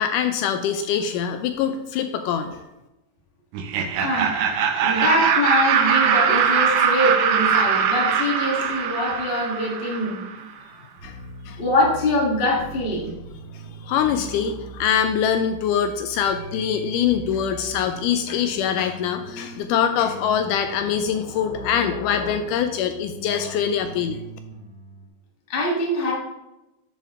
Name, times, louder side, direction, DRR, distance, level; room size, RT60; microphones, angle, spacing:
voice 1, 0.0-2.7 11.0-11.2 11.5-11.6 13.5-24.2, left 8 dB, 80° left, 7 dB, 1.9 m, -24 dB
Laughter, 3.5-10.3, right 7 dB, 75° right, 1.8 m, -21 dB
voice 2, 4.0-4.3 4.8-10.5 11.6-13.1 25.5-26.1, left 1 dB, 55° left, -3 dB, 0.6 m, -23 dB
sound 1, 11.0-25.1, right 2 dB, 55° right, 3.0 m, -40 dB
10.5 x 4.4 x 3.6 m, 0.96 s
omnidirectional pair, 4.0 m